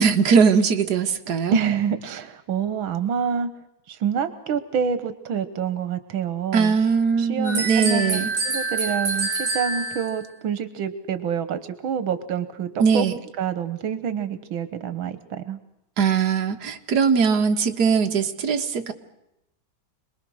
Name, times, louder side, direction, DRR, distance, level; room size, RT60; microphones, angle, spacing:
voice 1, 0.0-1.6 6.5-8.3 12.8-13.1 16.0-18.9, right 6 dB, 55° right, 4 dB, 2.0 m, -20 dB
voice 2, 1.5-3.5 3.9-6.8 7.2-8.2 8.5-13.0 13.4-15.6, right 7 dB, 85° right, 12 dB, 1.9 m, -27 dB
sound 1, 7.4-10.3, right 3 dB, 40° right, 2.8 m, -26 dB
27.0 x 20.5 x 6.3 m, 0.85 s
omnidirectional pair, 2.1 m